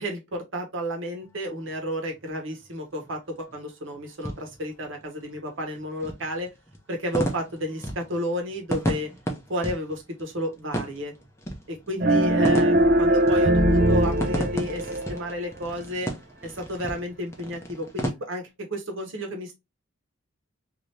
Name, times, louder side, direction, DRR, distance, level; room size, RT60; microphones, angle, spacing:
voice 1, 0.0-6.5 6.9-9.1 9.5-11.1 11.7-16.1 16.4-19.6, equal, 70° right, 1.0 m, -32 dB
sound 1, 0.8-18.1, equal, 15° left, 0.6 m, -35 dB
sound 2, 12.0-15.3, right 1 dB, 45° right, 0.5 m, -21 dB
2.8 x 2.6 x 3.1 m
head